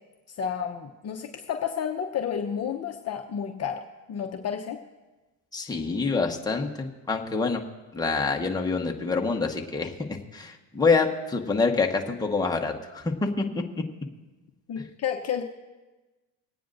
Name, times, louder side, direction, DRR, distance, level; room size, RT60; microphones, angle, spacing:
voice 1, 0.4-3.8 4.1-4.8 14.7-15.4, left 8 dB, 35° left, 2 dB, 0.9 m, -31 dB
voice 2, 5.5-7.6 7.9-13.4, left 4 dB, 10° left, 1 dB, 1.3 m, -26 dB
26.0 x 9.2 x 2.6 m, 1.2 s
supercardioid pair, 100°, 42 cm